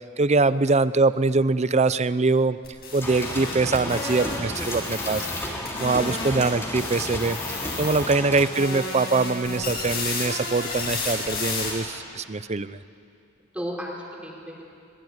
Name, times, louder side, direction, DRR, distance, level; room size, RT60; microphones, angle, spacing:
voice 1, 0.2-2.6 2.9-5.2 5.8-12.8, right 3 dB, 35° right, 15 dB, 0.6 m, -23 dB
sound 1, 2.6-6.5 6.8-8.1 8.4-11.7, left 3 dB, 50° left, 8.0 m, -32 dB
sound 2, 3.0-8.5, left 1 dB, 15° left, 3.4 m, -33 dB
voice 2, 3.8-4.2 4.5-5.2 5.8-6.0 13.5-14.6, equal, 5° right, -2 dB, 4.3 m, -37 dB
24.5 x 22.0 x 9.6 m, 2.6 s
head